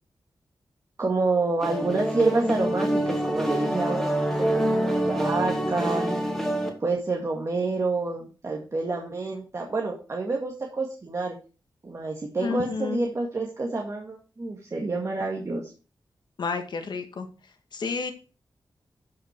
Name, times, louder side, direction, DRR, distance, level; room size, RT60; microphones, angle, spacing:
voice 1, 1.0-6.2 6.8-11.4 11.8-15.7, right 3 dB, 40° right, 0 dB, 2.1 m, -28 dB
sound 1, 1.6-6.7, right 1 dB, 5° left, 2.6 m, -26 dB
voice 2, 12.4-13.0 16.4-17.3 17.7-18.1, left 5 dB, 70° left, 7 dB, 1.8 m, -30 dB
13.0 x 5.8 x 4.7 m, 0.35 s
wide cardioid pair, 120°, 8 cm